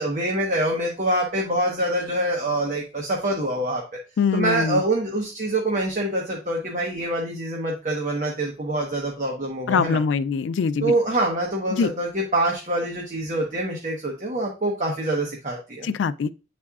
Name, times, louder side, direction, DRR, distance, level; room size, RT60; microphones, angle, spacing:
voice 1, 0.0-3.8 4.3-10.0 10.8-15.9, right 1 dB, 40° right, 1.0 m, -25 dB
voice 2, 4.2-4.8 9.7-10.9 11.7-11.9 15.8-16.3, left 5 dB, 85° left, 0.3 m, -23 dB
9.6 x 4.3 x 2.4 m
head